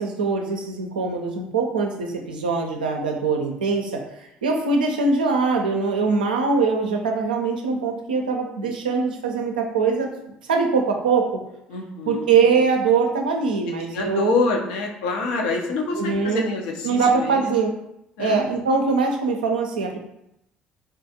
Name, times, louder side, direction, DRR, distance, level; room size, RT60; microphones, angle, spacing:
voice 1, 0.0-4.0 4.4-10.1 10.5-11.3 12.1-14.4 16.0-16.5 16.8-17.7 18.2-20.0, right 4 dB, 85° right, 2 dB, 0.4 m, -22 dB
voice 2, 11.7-12.3 13.9-17.5 18.2-18.4, left 3 dB, 75° left, 1 dB, 0.5 m, -26 dB
3.5 x 2.3 x 2.7 m, 0.81 s
hypercardioid pair, 55°, 5 cm